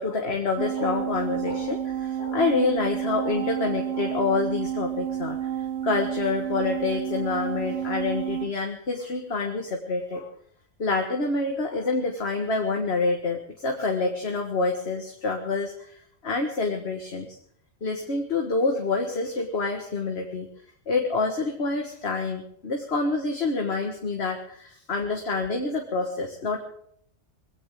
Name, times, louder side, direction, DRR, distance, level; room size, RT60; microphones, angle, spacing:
voice 1, 0.0-10.3 10.8-17.4 17.8-20.5 20.9-26.6, left 3 dB, 60° left, 3 dB, 1.9 m, -27 dB
sound 1, 0.6-8.5, right 10 dB, 80° right, 1.6 m, -30 dB
21.5 x 17.0 x 3.7 m, 0.65 s
omnidirectional pair, 1.2 m